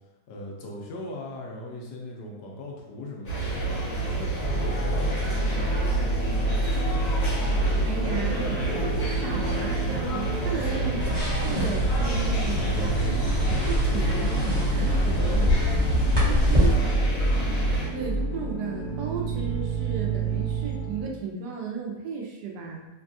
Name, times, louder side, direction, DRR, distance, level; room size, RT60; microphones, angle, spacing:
voice 1, 0.3-6.0 6.7-9.0 10.4-10.9 15.1-15.7 16.2-17.0, left 1 dB, 80° left, -1 dB, 1.2 m, -39 dB
sound 1, 3.2-17.9, right 4 dB, 55° left, 1.3 m, -29 dB
sound 2, 4.4-21.1, right 1 dB, 15° left, 0.7 m, -28 dB
voice 2, 7.8-11.0 11.4-15.5 16.3-16.8 17.9-22.9, right 5 dB, 75° right, -1 dB, 1.1 m, -34 dB
sound 3, 11.0-16.7, left 1 dB, 30° right, 1.1 m, -26 dB
3.3 x 2.2 x 2.6 m, 1.0 s
omnidirectional pair, 1.8 m